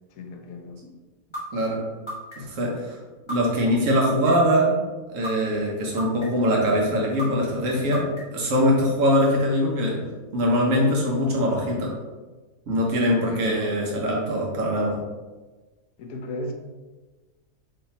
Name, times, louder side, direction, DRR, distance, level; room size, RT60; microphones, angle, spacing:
voice 1, 0.2-0.8 13.2-13.5 16.0-16.5, left 1 dB, 75° left, 3 dB, 1.0 m, -35 dB
sound 1, 1.3-1.4 2.1-2.6 3.3-3.4 4.0-4.5 5.2-5.3 6.0-6.5 7.2-7.3 7.9-8.4, equal, 20° left, 0.9 m, -33 dB
voice 2, 1.5-1.8 2.4-3.0 3.3-4.7 5.1-10.0 10.3-11.9 12.7-15.0, equal, 65° right, -2 dB, 1.3 m, -22 dB
3.2 x 2.8 x 4.1 m, 1.3 s
omnidirectional pair, 1.5 m